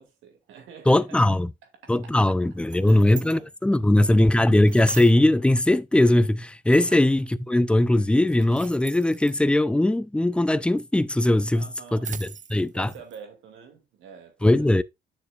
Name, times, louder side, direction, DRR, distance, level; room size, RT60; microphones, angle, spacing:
voice 1, 0.0-1.3 1.6-2.2 2.8-3.5 4.0-4.3 6.8-7.1 11.5-12.2 12.7-14.7, right 7 dB, 85° right, 2.5 m, -46 dB
voice 2, 0.9-1.5 1.9-11.7 11.9-12.9 14.4-14.8, left 1 dB, 5° left, 0.5 m, -20 dB
sound 1, 2.5-3.4 4.7-5.3 6.7-7.2 8.3-9.4 11.4-13.2, right 6 dB, 40° right, 0.9 m, -42 dB
9.9 x 6.7 x 2.5 m
cardioid pair, 90°, 20 cm